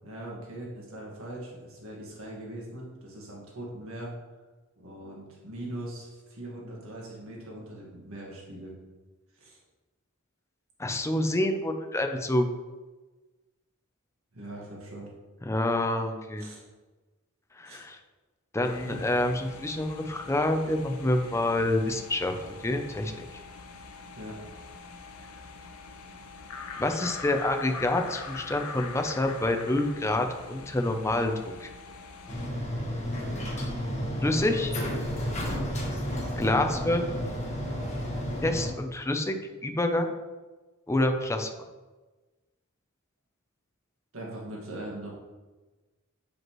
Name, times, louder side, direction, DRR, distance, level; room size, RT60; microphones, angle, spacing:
voice 1, 0.0-4.1 4.8-8.7 9.3-9.6 14.3-15.1 16.4-16.6 17.7-17.8 18.9-19.0 24.2-24.4 44.1-45.1, right 1 dB, 75° right, -3 dB, 1.7 m, -41 dB
voice 2, 10.8-12.5 15.5-16.5 17.6-18.0 18.5-23.1 26.8-31.3 31.6-31.7 34.2-34.7 36.4-37.1 38.4-39.3 39.6-40.1 40.9-41.5, left 1 dB, 15° left, 5 dB, 0.5 m, -27 dB
sound 1, 18.6-32.5, left 4 dB, 85° left, 0.6 m, -43 dB
elevator ride with heavy ventilation doors open close, 32.3-38.7, equal, 35° left, 1.4 m, -32 dB
7.7 x 5.2 x 3.0 m, 1.2 s
head